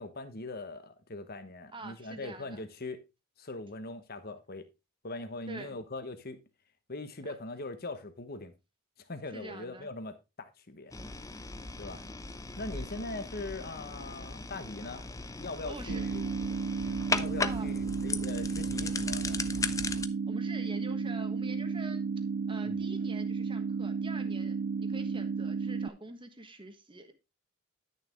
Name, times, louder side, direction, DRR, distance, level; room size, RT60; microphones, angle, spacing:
voice 1, 0.0-3.0 3.4-4.7 5.0-6.4 6.9-8.5 9.0-10.9 11.8-12.1 12.6-16.3 17.2-19.4 22.6-22.8, left 2 dB, 45° left, 1.1 m, -41 dB
voice 2, 1.7-2.7 5.5-5.8 7.2-7.3 9.3-9.9 12.7-12.9 15.6-16.1 17.4-17.7 20.3-22.0 22.5-27.1, right 2 dB, 20° right, 1.4 m, -45 dB
sound 1, 10.9-20.1, left 3 dB, 15° left, 0.5 m, -37 dB
sound 2, 15.9-25.9, right 5 dB, 45° right, 0.4 m, -33 dB
11.5 x 6.7 x 3.6 m
head